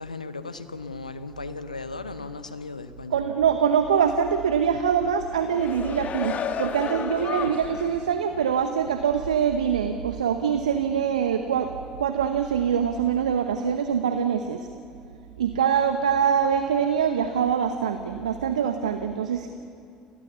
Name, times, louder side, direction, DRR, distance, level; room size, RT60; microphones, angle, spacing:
voice 1, 0.0-3.2, left 3 dB, 90° left, 12 dB, 0.9 m, -36 dB
voice 2, 3.1-14.7 15.4-19.5, right 7 dB, 80° right, 8 dB, 1.0 m, -24 dB
sound 1, 5.3-8.0 8.4-8.6, left 7 dB, 40° left, 1.7 m, -32 dB
29.5 x 23.0 x 6.9 m, 2.4 s
figure-of-eight pair, 60°, 4 cm